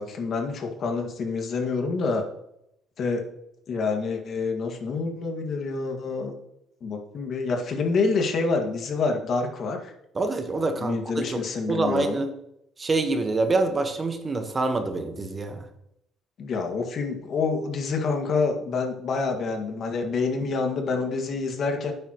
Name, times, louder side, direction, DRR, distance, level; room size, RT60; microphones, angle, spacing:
voice 1, 0.0-2.2 3.0-3.2 3.7-6.3 6.8-9.9 10.8-12.2 16.4-21.9, left 4 dB, 50° left, 3 dB, 2.0 m, -27 dB
voice 2, 10.1-11.4 11.7-12.3 12.8-15.7, right 3 dB, 25° right, 6 dB, 1.3 m, -26 dB
11.5 x 8.8 x 3.1 m, 0.78 s
cardioid pair, 115°, 0 cm